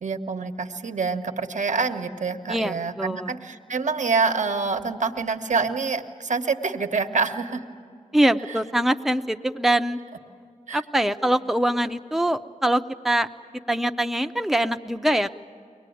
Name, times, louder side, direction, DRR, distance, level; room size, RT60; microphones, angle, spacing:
voice 1, 0.0-7.6 8.5-8.6 10.7-10.8, right 4 dB, 65° right, 7 dB, 1.1 m, -26 dB
voice 2, 2.5-3.4 8.1-10.0 10.7-13.3 13.7-15.3, right 1 dB, ahead, 7 dB, 0.7 m, -23 dB
23.5 x 19.0 x 9.3 m, 2.3 s
cardioid pair, 50°, 13 cm